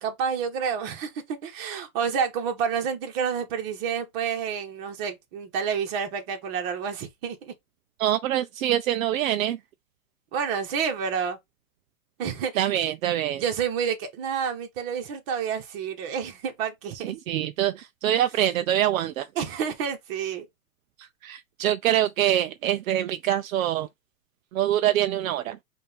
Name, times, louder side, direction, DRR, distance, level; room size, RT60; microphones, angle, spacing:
voice 1, 0.0-7.5 10.3-11.4 12.2-12.7 13.3-17.1 19.3-20.5, right 7 dB, 40° right, 1.5 m, -29 dB
voice 2, 8.0-9.6 12.6-13.4 17.0-19.3 21.0-23.9 24.5-25.6, right 12 dB, 70° right, 0.6 m, -25 dB
5.2 x 2.7 x 3.5 m
hypercardioid pair, 140°, 41 cm